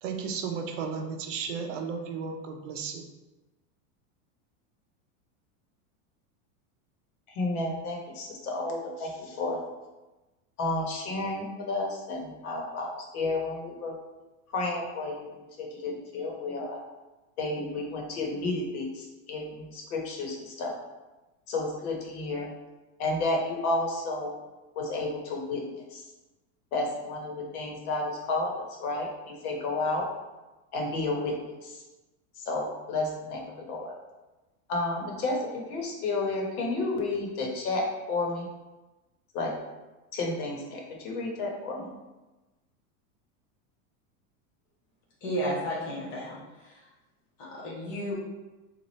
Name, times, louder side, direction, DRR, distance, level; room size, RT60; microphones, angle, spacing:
voice 1, 0.0-3.1, right 5 dB, 60° right, 4 dB, 0.5 m, -34 dB
voice 2, 7.3-9.6 10.6-13.9 14.5-16.8 17.4-20.7 21.5-22.5 23.0-24.3 24.7-26.0 26.7-30.0 30.7-31.3 31.6-31.8 32.3-33.9 34.7-38.5 39.3-39.5 40.1-41.9, left 2 dB, 85° left, 0 dB, 1.1 m, -31 dB
voice 3, 45.2-46.8 47.4-48.1, equal, 15° left, -6 dB, 0.4 m, -33 dB
3.1 x 2.4 x 4.0 m, 1.1 s
supercardioid pair, 175°, 43 cm